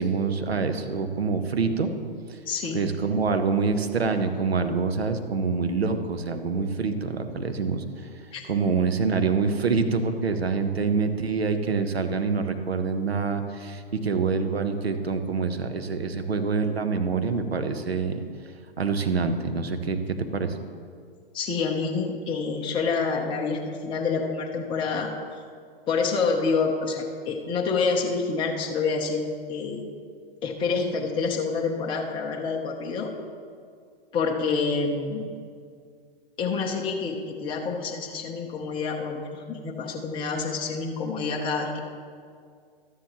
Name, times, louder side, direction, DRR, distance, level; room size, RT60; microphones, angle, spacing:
voice 1, 0.0-1.9 2.7-7.8 8.5-18.2 18.8-20.0 20.3-20.5, right 4 dB, 90° right, 7 dB, 1.0 m, -26 dB
voice 2, 2.5-2.9 8.3-8.4 21.3-25.1 25.9-29.8 30.4-33.1 34.1-35.3 36.4-41.8, left 4 dB, 15° left, 0 dB, 0.9 m, -27 dB
13.0 x 10.0 x 3.0 m, 2.2 s
hypercardioid pair, 125°, 30 cm